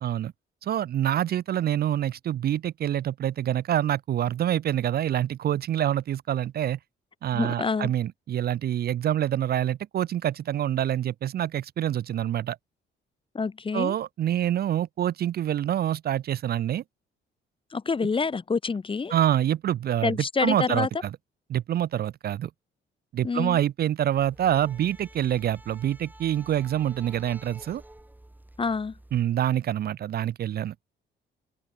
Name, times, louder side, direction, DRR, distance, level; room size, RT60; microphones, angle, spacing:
voice 1, 0.0-0.3 0.6-6.8 7.2-12.6 13.7-16.8 19.1-21.1 21.5-22.5 23.1-27.8 29.1-30.7, right 11 dB, 50° right, 0.5 m, -26 dB
voice 2, 7.3-7.9 13.3-13.9 17.7-19.1 20.0-20.9 23.2-23.6 28.6-28.9, left 4 dB, 25° left, 0.9 m, -27 dB
sound 1, 24.2-29.2, right 1 dB, 10° right, 6.6 m, -50 dB
open air
cardioid pair, 90°, 20 cm